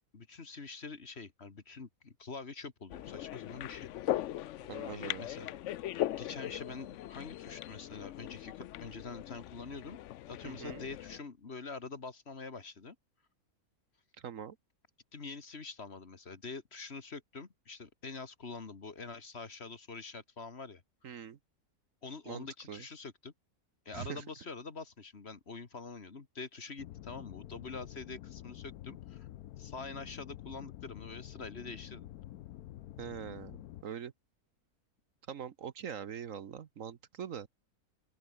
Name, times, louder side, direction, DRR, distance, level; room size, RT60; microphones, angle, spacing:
voice 1, 0.0-4.3 4.9-5.5 6.1-10.0 10.3-13.0 15.1-20.8 22.0-23.3 23.9-29.3 29.6-32.1, left 4 dB, 45° left, 2.0 m, -45 dB
sound 1, 2.9-11.2, left 13 dB, 65° left, 0.8 m, -39 dB
voice 2, 4.7-5.3 10.4-10.8 14.2-14.6 21.0-21.4 22.3-22.8 23.9-24.2 33.0-33.6 33.8-34.1 35.3-37.5, right 8 dB, 60° right, 1.3 m, -43 dB
sound 2, 26.8-33.8, left 14 dB, 80° left, 1.2 m, -48 dB
open air
omnidirectional pair, 1.6 m